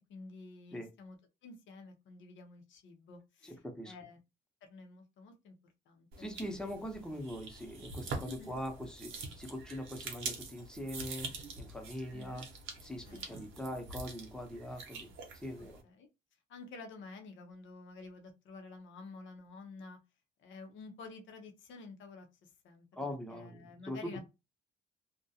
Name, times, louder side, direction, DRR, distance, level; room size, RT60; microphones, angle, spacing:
voice 1, 0.1-1.2 1.4-4.2 4.6-5.5 5.9-6.3 8.2-8.6 12.1-12.4 13.0-13.8 15.6-16.1 16.5-20.0 20.4-24.2, left 3 dB, 75° left, 0.7 m, -51 dB
voice 2, 3.4-3.9 6.2-12.4 12.8-15.1 15.3-15.8 22.9-24.2, equal, 5° left, 0.7 m, -42 dB
sound 1, 6.1-15.8, right 4 dB, 85° right, 0.7 m, -45 dB
2.4 x 2.1 x 2.7 m
cardioid pair, 90°, 20 cm